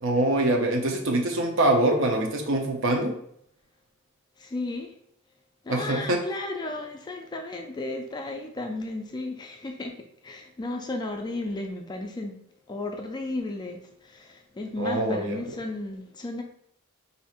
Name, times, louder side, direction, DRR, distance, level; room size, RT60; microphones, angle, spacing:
voice 1, 0.0-3.1 5.7-6.2 14.8-15.4, right 1 dB, 65° right, 2 dB, 0.7 m, -24 dB
voice 2, 4.4-4.9 5.6-12.4 12.7-16.4, left 2 dB, 20° left, 3 dB, 0.3 m, -34 dB
2.7 x 2.5 x 4.2 m, 0.68 s
head